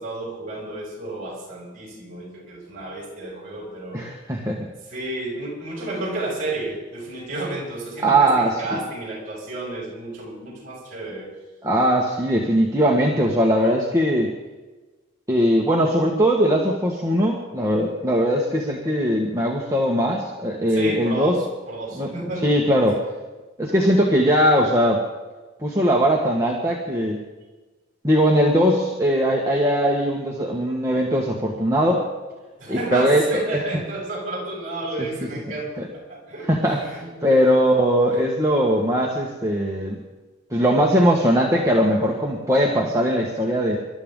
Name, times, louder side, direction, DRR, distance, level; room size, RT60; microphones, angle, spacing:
voice 1, 0.0-4.1 4.9-11.3 20.7-22.8 32.6-37.8, right 2 dB, 40° right, -3 dB, 6.7 m, -32 dB
voice 2, 3.9-4.7 8.0-8.8 11.6-14.3 15.3-21.4 21.9-22.1 22.4-23.0 23.6-25.0 25.6-27.2 28.0-32.0 32.7-33.2 36.5-39.9 40.5-43.8, equal, 15° right, -2 dB, 1.6 m, -20 dB
27.0 x 13.0 x 3.8 m, 1.2 s
head